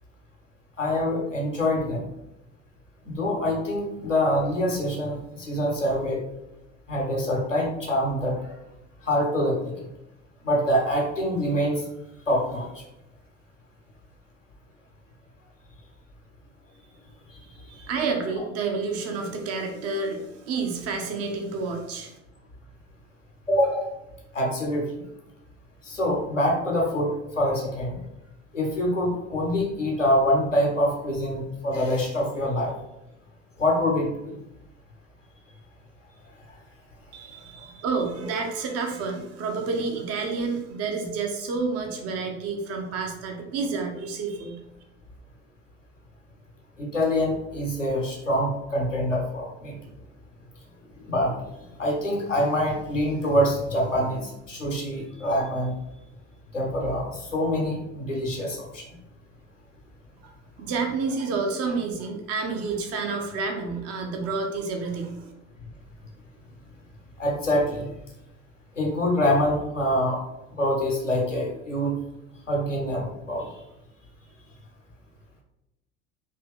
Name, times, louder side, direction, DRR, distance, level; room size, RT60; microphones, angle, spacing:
voice 1, 0.8-2.1 3.0-6.2 6.9-8.6 9.0-9.7 10.4-11.8 12.3-12.8 23.5-23.9 24.3-25.0 25.8-28.0 28.5-32.7 33.6-34.4 46.8-49.8 51.0-51.3 51.8-55.7 56.5-58.8 67.2-67.9 68.8-70.2 70.5-72.0 72.5-73.5, equal, 90° left, -1 dB, 1.0 m, -25 dB
voice 2, 17.7-22.2 37.1-44.6 60.2-60.3 60.6-65.3, right 4 dB, 40° right, 3 dB, 0.9 m, -29 dB
4.3 x 2.9 x 3.6 m, 0.90 s
figure-of-eight pair, 65°, 36 cm